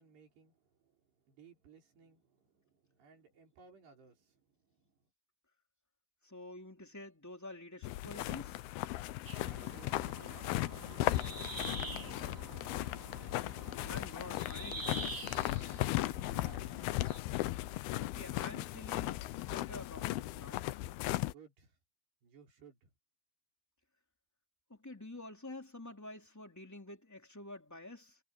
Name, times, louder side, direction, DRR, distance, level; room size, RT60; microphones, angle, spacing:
voice 1, 0.0-5.0 9.5-11.4 11.9-12.4 15.3-15.7 16.0-16.9 21.2-21.8 22.2-22.9, right 5 dB, 80° right, 7.2 m, -61 dB
voice 2, 6.2-8.6 13.8-14.9 18.0-20.7 24.7-28.2, left 2 dB, 5° left, 2.6 m, -48 dB
sound 1, 7.8-21.3, left 16 dB, 75° left, 2.5 m, -37 dB
sound 2, 9.3-17.2, right 3 dB, 25° right, 5.1 m, -47 dB
omnidirectional pair, 4.7 m